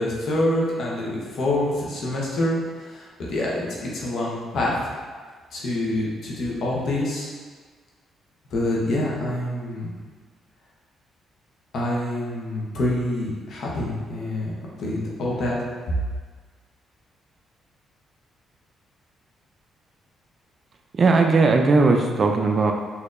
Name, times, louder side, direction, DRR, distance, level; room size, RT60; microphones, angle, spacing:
voice 1, 0.0-4.9 5.5-7.3 8.5-9.9 11.7-14.5 14.8-15.6 15.9-16.0, left 1 dB, 65° left, -4 dB, 0.9 m, -26 dB
voice 2, 20.9-22.7, right 3 dB, 40° right, 3 dB, 0.4 m, -18 dB
4.3 x 2.8 x 2.5 m, 1.5 s
cardioid pair, 90°, 0 cm